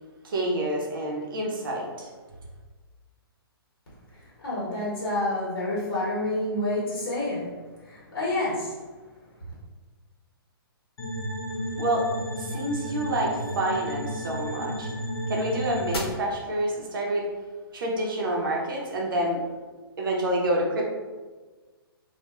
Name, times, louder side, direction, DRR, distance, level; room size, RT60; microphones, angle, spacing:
voice 1, 0.2-2.1 11.8-12.1 12.4-14.9 15.3-17.3 17.7-19.4 20.0-20.9, right 1 dB, 60° right, -1 dB, 0.6 m, -28 dB
voice 2, 4.4-7.5 7.8-8.7, left 1 dB, 60° left, -7 dB, 1.0 m, -28 dB
sound 1, 11.0-16.0, equal, 75° left, 0.7 m, -32 dB
2.8 x 2.2 x 2.2 m, 1.3 s
hypercardioid pair, 130°, 13 cm